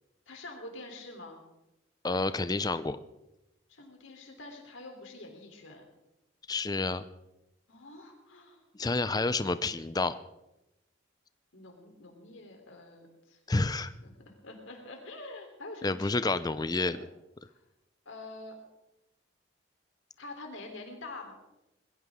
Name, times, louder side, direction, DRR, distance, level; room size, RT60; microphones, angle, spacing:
voice 1, 0.3-1.4 3.7-5.8 7.7-8.7 11.5-16.3 16.8-17.0 17.5-17.6 18.1-18.6 20.2-21.3, left 2 dB, 70° left, 3 dB, 3.5 m, -46 dB
voice 2, 2.0-3.0 6.5-7.0 8.8-10.2 13.5-13.9 15.8-17.1, left 3 dB, 20° left, 13 dB, 0.5 m, -29 dB
21.0 x 16.0 x 3.7 m, 0.94 s
head